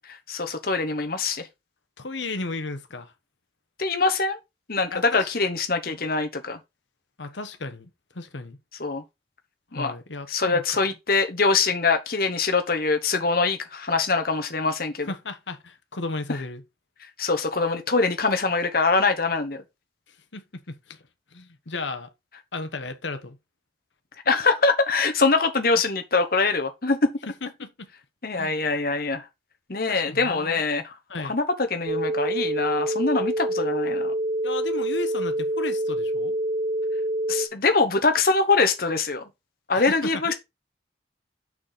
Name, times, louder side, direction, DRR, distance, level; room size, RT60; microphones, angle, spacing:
voice 1, 0.1-1.5 3.8-4.4 4.7-6.6 8.8-9.0 9.7-9.9 10.3-15.1 17.2-19.6 24.3-27.1 28.2-29.3 29.7-30.9 31.2-34.1 37.3-39.2 39.7-40.3, left 4 dB, 50° left, 1.2 m, -23 dB
voice 2, 2.0-3.1 4.9-5.3 5.9-6.0 7.2-8.6 9.7-10.8 15.0-16.6 20.3-21.0 21.3-22.1 22.5-23.4 27.4-27.9 28.4-28.6 29.9-30.6 31.1-31.4 34.4-36.4 39.7-40.3, left 3 dB, 80° left, 1.1 m, -34 dB
sound 1, 31.9-37.5, right 1 dB, 50° right, 1.2 m, -26 dB
6.4 x 6.1 x 4.1 m
head